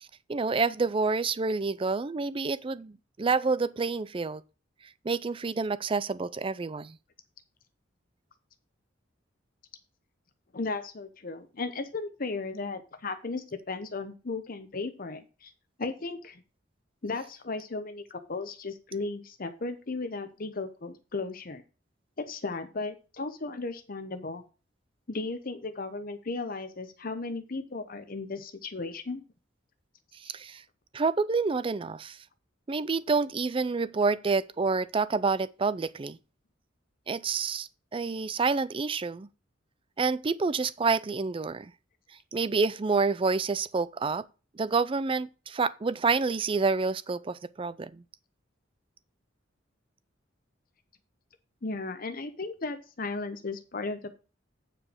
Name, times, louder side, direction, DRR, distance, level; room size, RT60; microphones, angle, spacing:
voice 1, 0.0-4.4 5.0-7.0 30.1-30.6 30.9-32.2 32.7-36.2 37.1-39.3 40.0-41.7 42.3-44.2 44.5-48.0, right 4 dB, 25° right, 0.4 m, -28 dB
voice 2, 10.5-15.5 15.8-16.4 17.0-21.6 22.2-24.4 25.1-29.2 51.6-54.1, left 3 dB, 50° left, 0.9 m, -35 dB
8.7 x 5.0 x 5.1 m
head